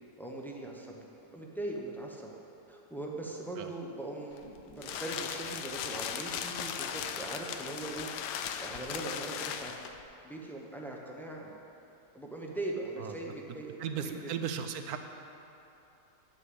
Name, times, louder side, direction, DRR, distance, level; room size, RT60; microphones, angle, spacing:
voice 1, 0.2-1.0 1.3-2.3 2.7-8.1 8.4-9.7 10.2-11.5 12.1-14.3, right 2 dB, ahead, -2 dB, 0.6 m, -40 dB
sound 1, 4.3-10.0, left 8 dB, 75° left, 1.2 m, -38 dB
voice 2, 13.8-15.0, right 7 dB, 70° right, 7 dB, 1.1 m, -36 dB
9.6 x 6.6 x 7.9 m, 2.9 s
omnidirectional pair, 1.8 m